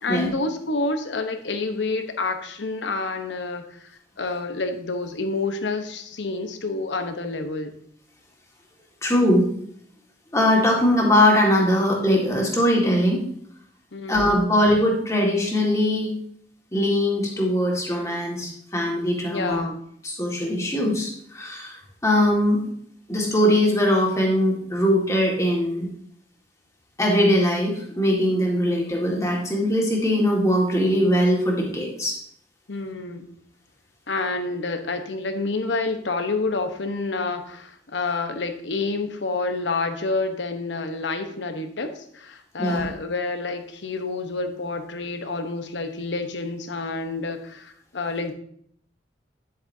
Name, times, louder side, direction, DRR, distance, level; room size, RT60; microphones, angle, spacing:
voice 1, 0.0-7.7 13.9-14.4 19.3-19.8 32.7-33.3 34.1-48.3, left 3 dB, 75° left, 6 dB, 1.0 m, -28 dB
voice 2, 9.0-9.5 10.3-13.2 14.1-16.1 16.7-19.7 20.0-22.6 23.1-25.9 27.0-32.2 42.6-42.9, left 1 dB, 15° left, -1 dB, 1.8 m, -21 dB
10.0 x 7.7 x 2.7 m, 0.66 s
head